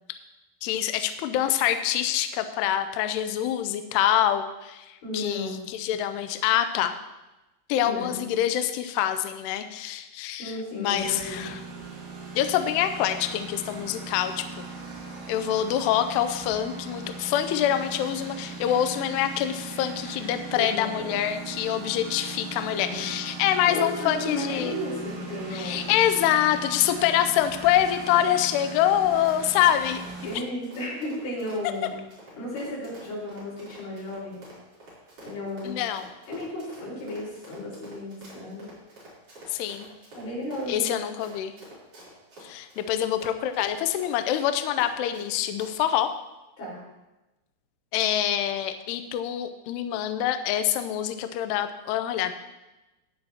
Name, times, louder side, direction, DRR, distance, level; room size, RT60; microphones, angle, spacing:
voice 1, 0.6-6.9 7.7-11.6 12.4-14.7 15.3-24.7 25.5-30.0 35.6-36.1 39.5-39.9 40.7-41.5 42.4-46.1 47.9-52.3, left 11 dB, 90° left, 9 dB, 2.3 m, -25 dB
voice 2, 5.0-5.7 7.8-8.3 10.3-11.5 20.5-21.2 22.7-23.1 23.7-25.9 30.2-31.9 32.3-34.4 35.2-35.8 36.3-38.7 40.2-40.9 46.6-46.8, left 1 dB, 65° left, -7 dB, 7.1 m, -34 dB
Engine, 10.9-30.3, right 3 dB, 75° right, 5.8 m, -39 dB
Run, 27.2-45.3 45.6-45.7, right 1 dB, 30° right, 4.3 m, -48 dB
15.0 x 9.8 x 3.0 m, 1.0 s
omnidirectional pair, 5.7 m